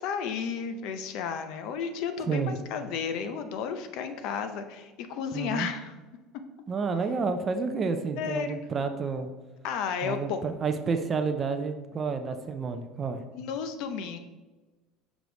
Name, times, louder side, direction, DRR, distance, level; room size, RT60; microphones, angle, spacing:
voice 1, 0.0-5.9 8.2-8.6 9.6-10.4 13.3-14.2, left 6 dB, 50° left, 8 dB, 0.6 m, -33 dB
voice 2, 5.3-5.7 6.7-9.3 10.0-13.2, right 5 dB, 20° right, 7 dB, 0.4 m, -30 dB
6.1 x 5.1 x 3.9 m, 1.2 s
cardioid pair, 175°, 0 cm